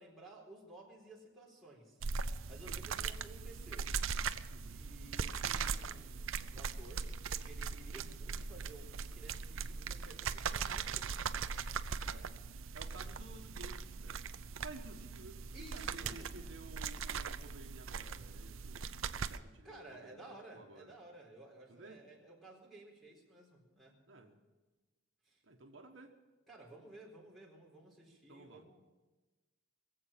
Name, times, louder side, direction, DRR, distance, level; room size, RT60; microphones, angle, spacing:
voice 1, 0.0-3.9 4.6-7.1 7.4-11.2 15.5-16.4 19.6-24.0 25.2-25.4 26.5-28.8, right 2 dB, ahead, -2 dB, 4.1 m, -55 dB
sound 1, 2.0-19.4, right 5 dB, 80° right, 0.6 m, -40 dB
voice 2, 12.7-14.2 14.6-18.8 19.2-20.9 21.7-22.0 24.1-24.4 25.4-26.1 28.3-28.7, right 2 dB, 65° right, 3 dB, 1.3 m, -54 dB
22.0 x 7.9 x 7.4 m, 1.2 s
head